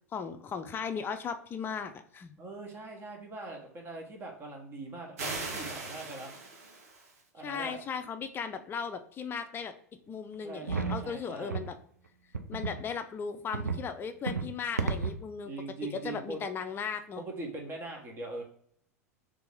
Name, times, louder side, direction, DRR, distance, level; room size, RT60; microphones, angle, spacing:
voice 1, 0.1-2.4 7.4-9.7 10.1-11.8 12.5-15.5 15.8-17.2, left 6 dB, 25° left, 9 dB, 0.4 m, -37 dB
voice 2, 2.4-6.3 7.3-7.8 10.4-11.6 15.4-16.4 17.2-18.4, right 2 dB, 30° right, 1 dB, 1.3 m, -41 dB
sound 1, 5.2-7.2, right 3 dB, 70° right, 1.1 m, -39 dB
sound 2, 10.7-11.0 11.5-11.7 12.3-12.8 13.5-13.8 14.3-14.5 14.8-15.2, right 4 dB, 90° right, 0.5 m, -32 dB
3.5 x 2.9 x 3.6 m, 0.62 s
figure-of-eight pair, 85°, 8 cm